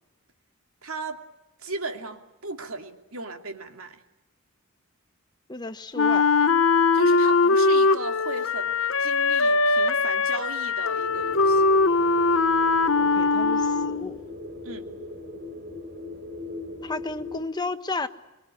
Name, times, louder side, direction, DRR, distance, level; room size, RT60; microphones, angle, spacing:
voice 1, 0.8-1.2 1.6-4.0 6.9-11.6 14.6-14.9, right 3 dB, 75° right, 6 dB, 2.6 m, -36 dB
voice 2, 5.5-6.3 13.0-14.2 16.8-18.1, left 3 dB, 20° left, 9 dB, 1.2 m, -33 dB
Wind instrument woodwind instrument, 6.0-14.1, left 4 dB, 65° left, 1.0 m, -21 dB
sound 1, 11.0-17.4, left 2 dB, 50° right, 5.1 m, -38 dB
25.0 x 23.5 x 10.0 m, 0.99 s
head